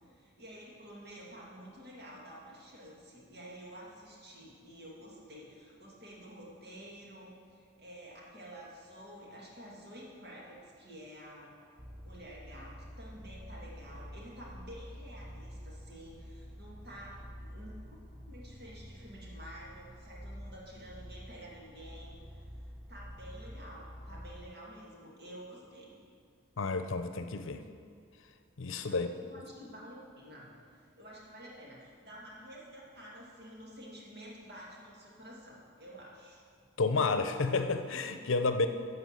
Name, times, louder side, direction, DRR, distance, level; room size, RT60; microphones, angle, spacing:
voice 1, 0.1-11.5 11.9-18.0 18.3-22.4 22.9-26.0 28.9-36.4, equal, 50° right, -4 dB, 2.6 m, -50 dB
sound 1, 11.8-24.5, equal, 5° right, 0.4 m, -48 dB
voice 2, 26.6-27.6 28.6-29.1 36.8-38.7, left 3 dB, 75° left, 8 dB, 0.7 m, -30 dB
12.0 x 5.5 x 7.7 m, 2.2 s
head